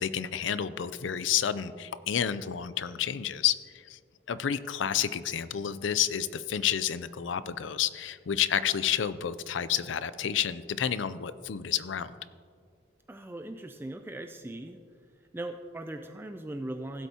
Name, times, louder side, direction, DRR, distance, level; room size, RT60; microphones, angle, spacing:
voice 1, 0.0-4.0 4.3-12.1, left 9 dB, 80° left, 14 dB, 0.4 m, -30 dB
voice 2, 13.1-14.8 15.3-17.1, right 1 dB, 10° right, 6 dB, 0.3 m, -39 dB
16.0 x 8.1 x 2.8 m, 2.1 s
head